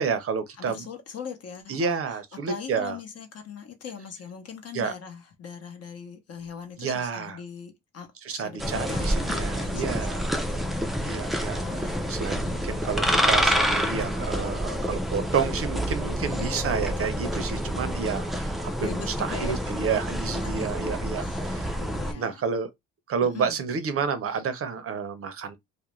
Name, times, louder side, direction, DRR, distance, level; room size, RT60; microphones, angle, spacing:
voice 1, 0.0-0.9 1.7-3.0 4.7-4.9 6.8-7.4 8.2-10.3 11.0-21.8 22.1-22.7 23.1-25.6, right 6 dB, 50° right, 0.6 m, -30 dB
voice 2, 0.6-2.2 2.5-12.8 17.2-17.3 17.6-17.8 18.8-20.7 21.2-22.4 23.3-23.6, left 6 dB, 55° left, 0.8 m, -41 dB
sound 1, 8.6-22.1, equal, ahead, 0.3 m, -28 dB
2.4 x 2.1 x 2.9 m
cardioid pair, 90°, 30 cm